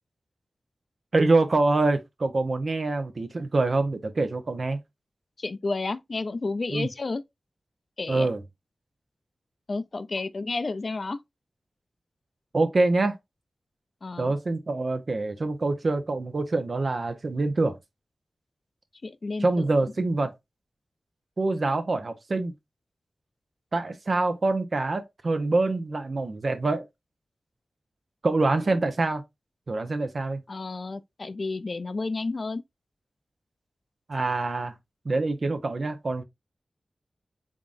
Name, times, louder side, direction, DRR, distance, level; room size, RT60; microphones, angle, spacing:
voice 1, 1.1-4.8 6.7-6.9 8.1-8.4 12.5-13.1 14.2-17.8 19.4-20.3 21.4-22.5 23.7-26.9 28.2-29.2 29.7-30.4 34.1-34.7 35.0-36.2, right 2 dB, 60° right, 0.8 m, -25 dB
voice 2, 5.4-7.2 8.0-8.3 9.7-11.2 14.0-14.3 19.0-19.7 30.5-32.6, left 3 dB, 60° left, 0.4 m, -31 dB
3.7 x 3.7 x 2.5 m
cardioid pair, 45°, 0 cm